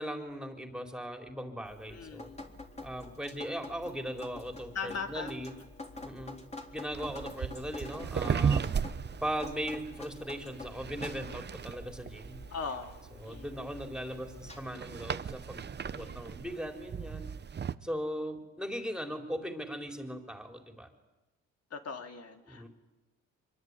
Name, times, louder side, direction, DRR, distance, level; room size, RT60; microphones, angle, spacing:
voice 1, 0.0-2.3 2.8-5.5 6.0-6.4 6.7-8.7 9.2-12.4 13.2-17.3 17.8-20.9 22.5-22.7, equal, ahead, 4 dB, 4.1 m, -39 dB
Drip, 1.6-14.6, left 2 dB, 20° left, 3.9 m, -47 dB
voice 2, 1.9-2.4 4.7-5.3 6.4-6.5 12.5-13.0 13.3-13.6 15.9-16.3 21.7-22.7, left 5 dB, 55° left, 4 dB, 3.8 m, -40 dB
sound 1, 6.9-17.7, right 7 dB, 35° right, 0.9 m, -36 dB
25.0 x 23.0 x 9.8 m, 1.0 s
cardioid pair, 90°, 30 cm